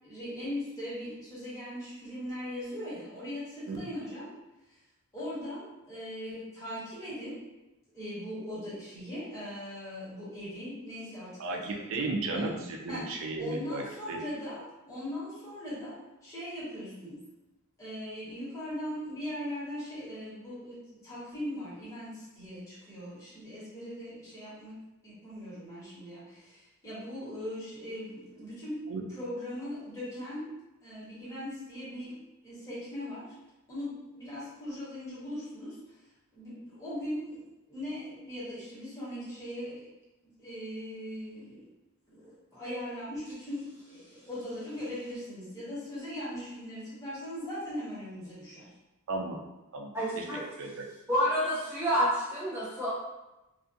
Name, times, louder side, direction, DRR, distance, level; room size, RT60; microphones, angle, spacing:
voice 1, 0.0-4.3 4.7-4.8 5.1-7.4 7.9-11.8 12.3-12.4 12.9-13.0 13.4-17.2 17.8-24.8 25.0-28.8 29.1-30.5 30.8-33.2 33.7-36.0 36.3-37.4 37.7-39.9 40.4-41.7 42.1-48.7 50.1-50.4, equal, 15° left, -11 dB, 1.3 m, -39 dB
voice 2, 11.9-13.8 14.1-14.2 28.9-29.0 49.1-49.4 49.7-50.2 50.6-50.8, right 3 dB, 65° right, 1 dB, 0.4 m, -34 dB
voice 3, 49.9-50.8 51.1-52.9, equal, 10° right, -9 dB, 0.7 m, -29 dB
2.4 x 2.4 x 2.6 m, 0.99 s
head